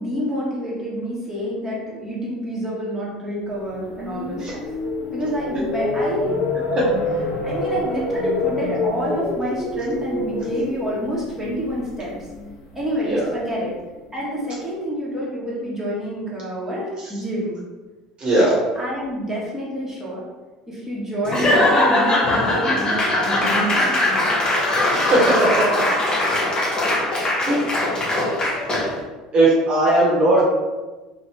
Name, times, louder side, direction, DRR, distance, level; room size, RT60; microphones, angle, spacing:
voice 1, 0.0-4.6 5.1-6.4 7.4-12.1 12.7-13.8 14.1-17.6 18.7-20.3 20.7-24.4, equal, 10° right, -7 dB, 1.1 m, -28 dB
sound 1, 3.6-13.7, left 2 dB, 70° left, 0.7 m, -27 dB
voice 2, 18.2-18.6 24.9-25.7 27.5-27.6 29.3-30.4, right 2 dB, 35° right, -6 dB, 1.0 m, -18 dB
Laughter / Applause / Crowd, 21.2-29.0, left 1 dB, 25° left, 0.9 m, -20 dB
2.6 x 2.1 x 3.3 m, 1.2 s
hypercardioid pair, 70°, 3 cm